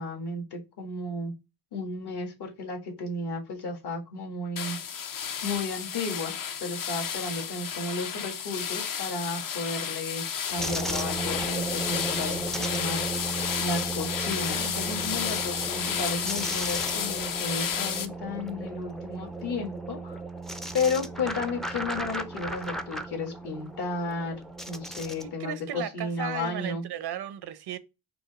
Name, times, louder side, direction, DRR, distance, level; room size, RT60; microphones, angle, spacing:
voice 1, 0.0-1.3 1.7-4.8 5.4-6.3 6.6-12.4 12.7-20.2 20.7-24.4 24.7-26.9, left 3 dB, 70° left, 1.7 m, -33 dB
sound 1, 4.6-18.1, left 8 dB, 50° left, 0.6 m, -32 dB
sound 2, 10.6-25.3, right 2 dB, ahead, 0.4 m, -35 dB
voice 2, 25.2-27.8, right 10 dB, 70° right, 0.7 m, -35 dB
4.9 x 2.0 x 4.6 m
cardioid pair, 120°, 41 cm